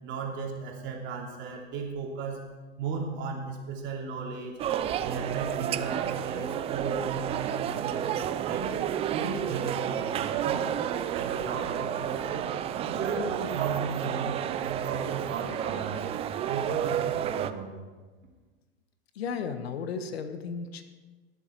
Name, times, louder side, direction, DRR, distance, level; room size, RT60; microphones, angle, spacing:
voice 1, 0.0-2.4 2.8-4.6 5.0-8.1 8.4-8.7 9.1-10.7 11.1-12.5 12.8-16.1 16.4-17.8, right 4 dB, 40° right, 0 dB, 2.8 m, -35 dB
sound 1, 4.6-17.5, right 10 dB, 20° right, 0.4 m, -31 dB
voice 2, 19.1-20.8, left 6 dB, 85° left, 8 dB, 1.4 m, -34 dB
19.5 x 7.3 x 4.6 m, 1.3 s
hypercardioid pair, 130°, 30 cm